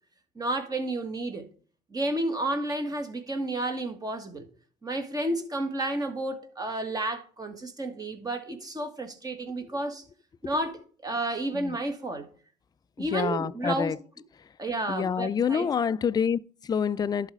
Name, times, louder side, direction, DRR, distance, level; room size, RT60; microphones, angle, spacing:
voice 1, 0.3-1.4 1.9-4.4 4.8-10.0 10.4-12.3 13.0-13.9 14.6-15.9, right 2 dB, 20° right, 1.7 m, -31 dB
voice 2, 13.0-14.0 14.9-17.3, left 7 dB, 25° left, 0.3 m, -27 dB
11.5 x 4.1 x 4.8 m
cardioid pair, 110°, 17 cm